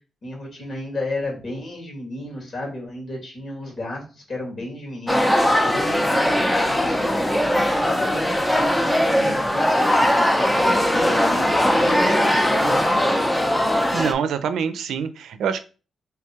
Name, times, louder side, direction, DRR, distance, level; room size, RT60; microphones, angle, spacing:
voice 1, 0.2-10.0 10.5-12.8, left 2 dB, 55° left, -1 dB, 2.0 m, -32 dB
sound 1, 5.1-14.1, equal, 10° left, 0.6 m, -20 dB
voice 2, 13.9-15.6, right 7 dB, 85° right, 11 dB, 0.4 m, -25 dB
3.3 x 2.3 x 4.3 m, 0.34 s
cardioid pair, 75°, 0 cm